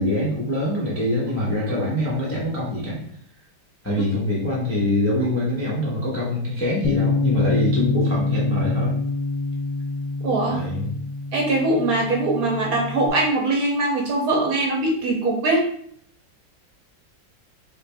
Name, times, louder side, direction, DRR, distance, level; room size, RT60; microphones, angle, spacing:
voice 1, 0.0-3.0 3.8-9.0 10.5-10.9, left 1 dB, 15° left, -6 dB, 0.4 m, -24 dB
Bass guitar, 6.8-13.1, left 3 dB, 80° left, 1.2 m, -26 dB
voice 2, 10.2-10.6 11.3-15.6, right 2 dB, 60° right, -1 dB, 1.1 m, -22 dB
3.9 x 2.5 x 3.3 m, 0.64 s
omnidirectional pair, 2.0 m